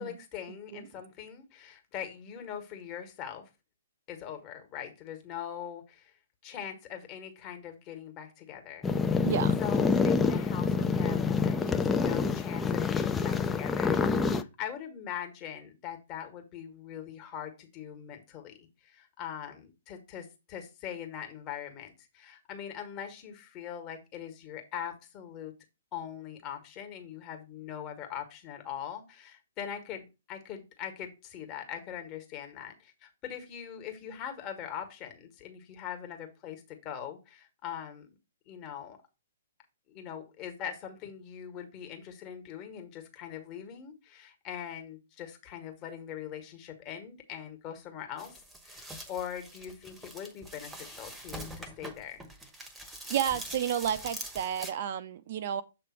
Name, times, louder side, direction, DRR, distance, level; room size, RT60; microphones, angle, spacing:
voice 1, 0.0-3.5 4.1-6.1 6.4-9.3 9.6-25.5 25.9-38.1 38.4-39.0 39.9-52.2, left 9 dB, 30° left, 1.6 m, -42 dB
sound 1, 8.8-14.4, left 5 dB, 10° left, 0.5 m, -27 dB
voice 2, 9.2-9.5 53.1-55.6, right 9 dB, 45° right, 0.5 m, -31 dB
sound 2, 48.2-54.7, right 1 dB, 5° right, 1.0 m, -44 dB
7.5 x 3.3 x 5.8 m
figure-of-eight pair, 120°, 0 cm